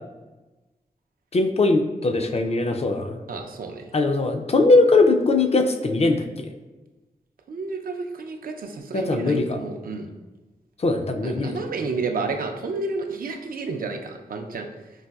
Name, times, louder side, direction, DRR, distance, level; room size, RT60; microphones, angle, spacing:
voice 1, 1.3-3.2 3.9-6.5 8.9-9.6 10.8-11.6, left 3 dB, 45° left, 5 dB, 0.4 m, -20 dB
voice 2, 3.3-3.8 7.5-10.1 11.2-14.7, right 4 dB, 70° right, 4 dB, 0.4 m, -31 dB
4.0 x 2.5 x 2.3 m, 1.1 s
cardioid pair, 50°, 15 cm